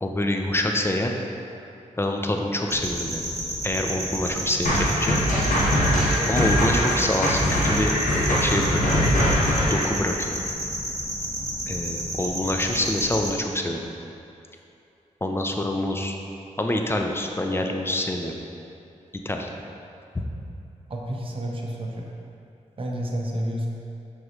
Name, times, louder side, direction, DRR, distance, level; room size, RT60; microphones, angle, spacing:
voice 1, 0.0-1.1 2.0-3.3 3.6-5.2 6.3-7.9 8.3-9.0 9.7-10.3 11.7-13.8 15.2-16.2 16.6-18.3 19.1-19.5 20.1-20.3, left 1 dB, 20° left, 2 dB, 0.6 m, -26 dB
sound 1, 2.7-13.3, right 1 dB, 20° right, 1.5 m, -31 dB
sound 2, 4.7-9.9, equal, 80° left, 1.2 m, -22 dB
voice 2, 20.9-22.1 22.8-23.7, equal, 45° right, -2 dB, 0.9 m, -30 dB
6.2 x 5.3 x 3.1 m, 2.7 s
cardioid pair, 65°, 13 cm